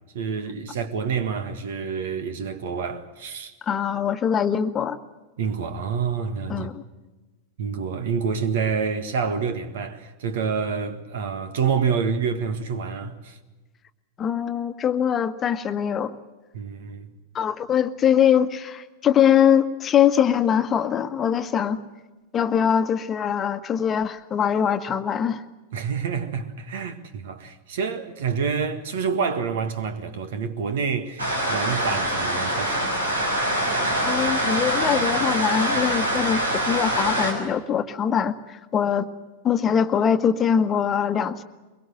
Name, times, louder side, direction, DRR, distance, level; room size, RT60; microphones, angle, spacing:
voice 1, 0.1-3.5 5.4-6.7 7.6-13.4 16.5-17.1 25.7-32.9, right 6 dB, 55° right, 1.8 m, -27 dB
voice 2, 3.6-5.0 6.5-6.8 14.2-16.1 17.3-21.8 22.3-25.4 34.0-39.1 39.4-41.4, left 8 dB, 25° left, 1.4 m, -22 dB
sound 1, 31.2-37.3, right 1 dB, 80° right, 6.0 m, -24 dB
23.5 x 23.0 x 7.8 m
figure-of-eight pair, 90°, 0 cm